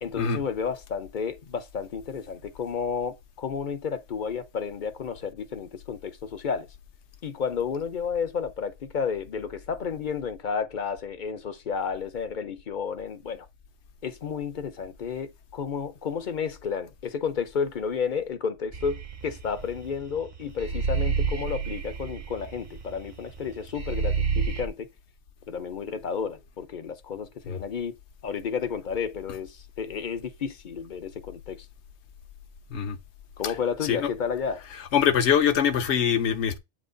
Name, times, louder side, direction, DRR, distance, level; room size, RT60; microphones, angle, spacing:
voice 1, 0.0-6.7 7.2-13.5 14.0-24.9 25.5-28.0 28.2-31.7 33.4-34.6, left 6 dB, 50° left, 0.8 m, -32 dB
sound 1, 18.7-20.2 20.6-23.5 23.8-24.7, right 5 dB, 40° right, 0.9 m, -28 dB
voice 2, 34.9-36.6, left 8 dB, 70° left, 1.0 m, -23 dB
8.6 x 3.0 x 3.8 m
omnidirectional pair, 1.2 m